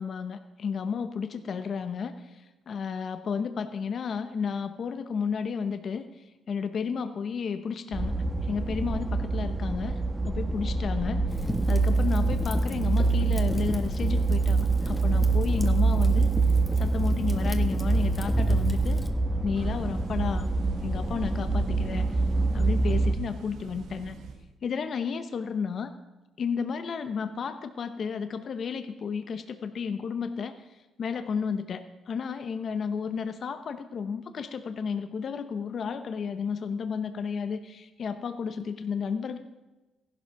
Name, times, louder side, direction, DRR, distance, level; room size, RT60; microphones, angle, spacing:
voice 1, 0.0-8.1 8.4-16.3 16.8-19.1 19.4-20.5 20.8-22.2 22.5-24.2 24.6-25.9 26.4-39.4, left 6 dB, 55° left, 9 dB, 0.9 m, -32 dB
sound 1, 7.9-23.1, right 3 dB, 15° right, 1.3 m, -25 dB
Fire, 11.3-19.1, left 1 dB, 10° left, 1.5 m, -38 dB
sound 2, 19.5-24.5, right 5 dB, 75° right, 1.3 m, -44 dB
15.0 x 11.5 x 5.8 m, 1.1 s
cardioid pair, 90°, 0 cm